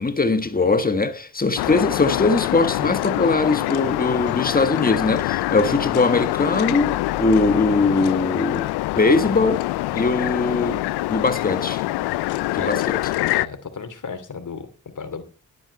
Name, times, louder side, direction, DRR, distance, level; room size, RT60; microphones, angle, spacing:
voice 1, 0.0-8.7 9.0-9.7 9.9-10.8 11.1-11.8 12.5-13.0, left 3 dB, 25° left, 1.7 m, -21 dB
sound 1, 1.6-13.5, left 17 dB, 90° left, 0.5 m, -25 dB
voice 2, 13.3-14.7 14.9-15.2, left 5 dB, 50° left, 2.8 m, -33 dB
11.0 x 8.7 x 6.6 m
supercardioid pair, 50°, 38 cm